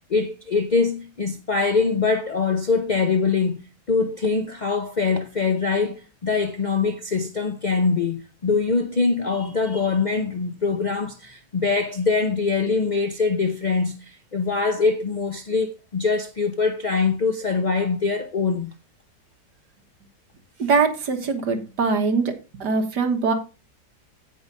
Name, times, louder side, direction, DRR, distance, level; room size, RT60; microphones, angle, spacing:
voice 1, 0.1-3.6 3.9-18.7, left 4 dB, 60° left, 0.4 m, -23 dB
voice 2, 20.6-22.4 22.6-23.3, right 4 dB, 65° right, 1.9 m, -22 dB
16.5 x 5.6 x 2.6 m
omnidirectional pair, 1.9 m